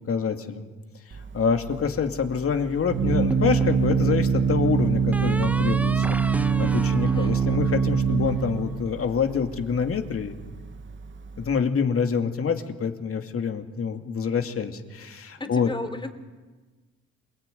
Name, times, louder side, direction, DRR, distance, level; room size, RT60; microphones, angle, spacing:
voice 1, 0.1-0.7 1.1-6.2 6.6-10.3 11.4-15.7, left 6 dB, 50° left, 6 dB, 2.5 m, -26 dB
Organ, 1.1-11.6, right 6 dB, 40° right, 1.2 m, -24 dB
sound 1, 3.3-4.1 5.1-8.5, right 2 dB, 5° right, 0.7 m, -34 dB
voice 2, 15.4-16.1, left 2 dB, 15° left, 9 dB, 3.0 m, -34 dB
28.0 x 19.5 x 9.2 m, 1.3 s
cardioid pair, 90°, 30 cm